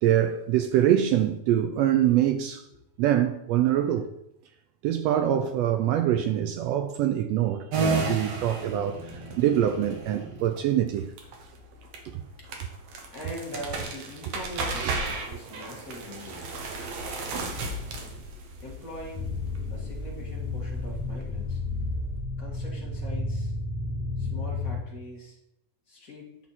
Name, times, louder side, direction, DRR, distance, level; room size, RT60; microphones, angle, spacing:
voice 1, 0.0-2.6 3.0-4.1 4.8-11.1 12.0-12.2 14.8-14.9, right 11 dB, 85° right, 1.5 m, -24 dB
sound 1, 7.7-21.9, right 3 dB, 60° right, 2.1 m, -34 dB
voice 2, 13.1-16.5 18.6-19.3 19.7-21.6 22.4-23.5 24.2-25.4 25.9-26.3, left 1 dB, 35° left, 1.7 m, -42 dB
sound 2, 19.1-24.8, left 2 dB, 10° left, 0.9 m, -32 dB
10.5 x 5.8 x 4.2 m
omnidirectional pair, 3.5 m